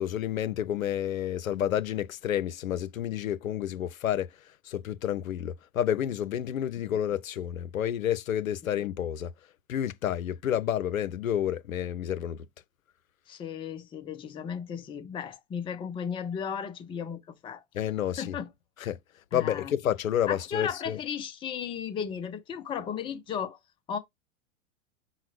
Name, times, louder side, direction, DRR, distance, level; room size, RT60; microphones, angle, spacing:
voice 1, 0.0-4.3 4.6-9.3 9.7-12.5 17.7-18.4 18.8-19.0 19.3-21.0, left 10 dB, 85° left, 0.5 m, -30 dB
voice 2, 13.3-17.6 18.2-18.5 19.3-19.7 20.3-23.6 23.9-24.0, left 7 dB, 15° left, 0.5 m, -35 dB
5.5 x 2.1 x 3.1 m
hypercardioid pair, 100°, 40 cm